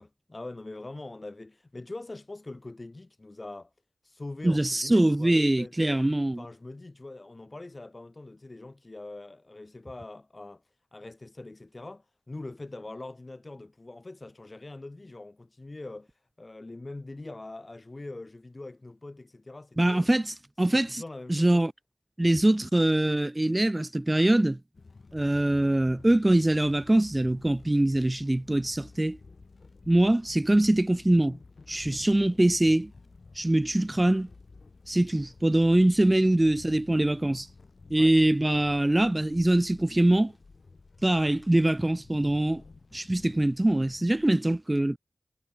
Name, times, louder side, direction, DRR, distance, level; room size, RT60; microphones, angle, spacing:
voice 1, 0.0-3.7 4.0-6.0 6.4-10.6 10.9-16.1 16.4-20.1 20.7-21.6 38.0-38.1, left 2 dB, 40° left, 3.2 m, -43 dB
voice 2, 4.4-6.4 19.8-21.0 21.3-21.7 22.2-24.6 25.1-29.2 29.9-31.4 31.7-32.9 33.3-34.3 34.9-37.5 37.9-40.3 41.0-42.6 42.9-45.0, right 1 dB, 25° right, 0.5 m, -23 dB
sound 1, 24.7-44.3, left 3 dB, 70° left, 3.1 m, -51 dB
wide cardioid pair, 60°, 0 cm